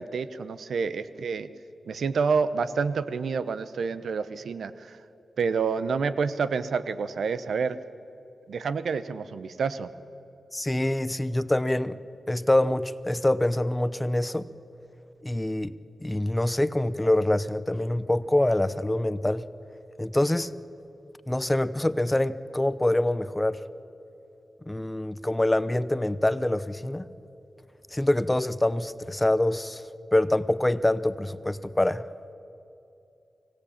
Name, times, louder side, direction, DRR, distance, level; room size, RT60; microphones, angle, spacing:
voice 1, 0.0-1.5 1.9-5.0 5.4-7.8 8.5-9.9, right 5 dB, 80° right, 14 dB, 0.9 m, -28 dB
voice 2, 10.5-12.0 12.3-14.5 15.2-15.7 16.0-19.4 20.0-20.5 21.3-23.6 24.7-27.0 27.9-29.8 30.1-32.0, left 1 dB, 15° left, 15 dB, 0.8 m, -25 dB
24.5 x 17.5 x 8.7 m, 2.8 s
cardioid pair, 70°, 0 cm